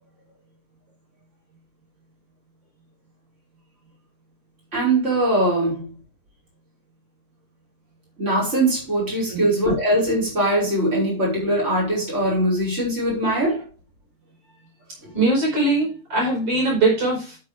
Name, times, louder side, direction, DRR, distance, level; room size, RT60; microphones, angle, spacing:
voice 1, 4.7-5.9 8.2-13.6, right 1 dB, 20° right, 5.7 m, -21 dB
voice 2, 15.1-17.4, right 2 dB, 45° right, 6.0 m, -21 dB
12.5 x 6.8 x 3.5 m
omnidirectional pair, 3.9 m